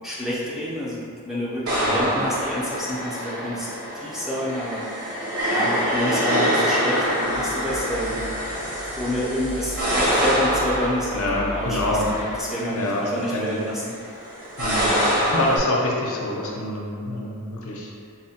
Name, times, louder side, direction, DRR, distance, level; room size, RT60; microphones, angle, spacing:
voice 1, 0.0-3.7 4.0-5.2 5.5-8.2 9.0-13.9, equal, ahead, -8 dB, 0.4 m, -28 dB
sound 1, 1.7-15.6, equal, 80° right, 0.7 m, -26 dB
sound 2, 7.2-12.4, left 1 dB, 40° right, 0.6 m, -37 dB
voice 2, 11.1-12.1 12.7-13.6 14.6-17.9, left 1 dB, 65° left, -2 dB, 0.5 m, -26 dB
4.1 x 2.1 x 2.6 m, 2.2 s
head